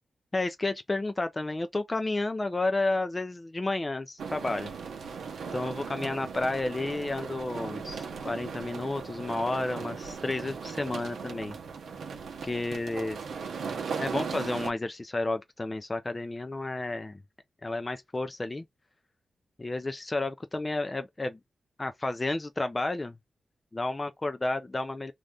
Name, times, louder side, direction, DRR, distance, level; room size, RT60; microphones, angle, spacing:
voice 1, 0.3-4.7 5.5-11.6 12.4-13.2 14.0-17.2 17.6-18.6 19.6-21.4 21.8-23.1 23.7-25.1, left 2 dB, 25° left, 0.3 m, -31 dB
sound 1, 4.2-14.7, right 5 dB, 90° right, 0.6 m, -38 dB
2.6 x 2.4 x 3.3 m
wide cardioid pair, 100°, 0 cm